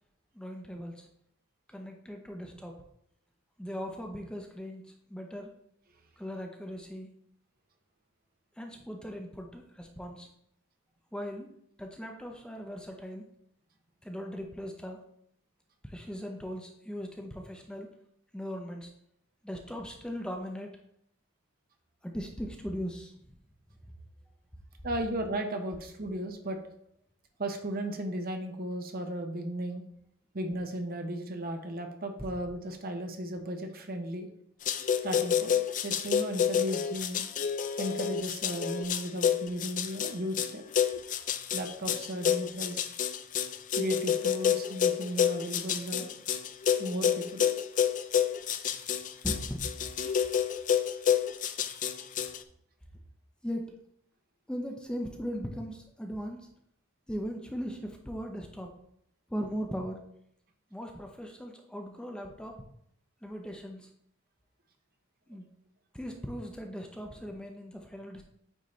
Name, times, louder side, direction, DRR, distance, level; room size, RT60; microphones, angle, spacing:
voice 1, 0.3-1.1 1.7-2.7 3.6-5.5 6.2-7.1 8.6-10.3 11.1-11.5 11.8-13.3 14.0-15.0 15.8-17.9 18.3-18.9 19.4-20.7 22.0-23.1 49.2-49.6 53.4-53.7 54.5-56.5 57.1-58.7 59.3-60.0 60.7-62.6 63.2-63.9 65.3-65.5 65.9-68.2, equal, 5° left, 2 dB, 0.7 m, -38 dB
voice 2, 24.8-26.6 27.4-29.8 30.3-34.3 35.0-37.2 37.8-40.6 41.5-42.9 43.7-46.1 46.8-47.5, right 1 dB, 45° right, 5 dB, 0.9 m, -35 dB
sound 1, 34.7-52.4, left 8 dB, 40° left, 0.4 m, -29 dB
9.0 x 4.1 x 3.2 m, 0.70 s
head